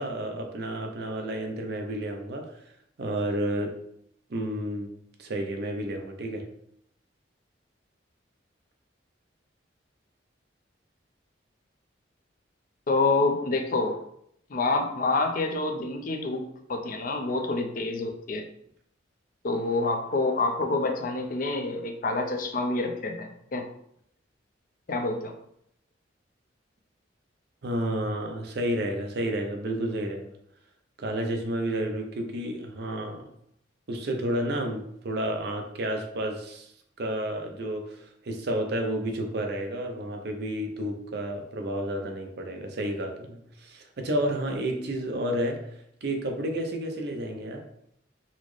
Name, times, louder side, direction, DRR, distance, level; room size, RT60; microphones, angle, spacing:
voice 1, 0.0-2.6 3.0-3.8 4.3-4.9 5.2-6.5 27.6-30.3 31.0-33.2 33.9-36.7 37.0-45.7 46.0-47.6, right 1 dB, 55° right, 3 dB, 0.5 m, -31 dB
voice 2, 12.9-14.0 14.5-16.4 16.7-18.4 19.4-23.6 24.9-25.3, left 3 dB, 45° left, 4 dB, 0.4 m, -27 dB
4.0 x 2.0 x 3.1 m, 0.71 s
head